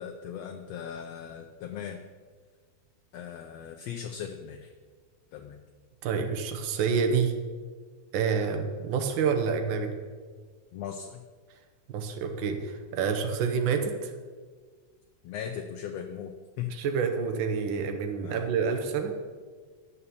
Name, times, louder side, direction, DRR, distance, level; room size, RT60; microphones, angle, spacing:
voice 1, 0.0-2.0 3.1-4.7 5.3-5.6 10.7-11.2 15.2-16.7 18.2-18.5, left 8 dB, 75° left, 5 dB, 1.5 m, -38 dB
voice 2, 6.0-7.3 8.1-9.9 11.9-14.1 16.7-19.1, right 6 dB, 85° right, 5 dB, 1.0 m, -28 dB
11.0 x 6.9 x 7.0 m, 1.5 s
omnidirectional pair, 3.6 m